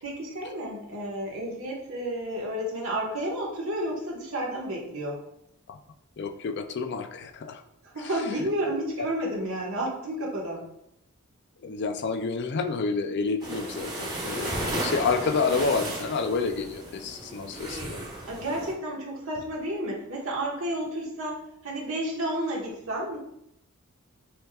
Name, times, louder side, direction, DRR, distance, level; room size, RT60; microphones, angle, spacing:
voice 1, 0.0-5.1 7.8-10.6 18.3-23.2, right 1 dB, 70° right, -3 dB, 1.3 m, -31 dB
voice 2, 6.2-7.6 11.6-18.0, left 4 dB, 55° left, 8 dB, 0.4 m, -29 dB
sound 1, 13.4-18.7, right 1 dB, 20° right, 1.1 m, -34 dB
6.5 x 3.4 x 2.4 m, 0.80 s
head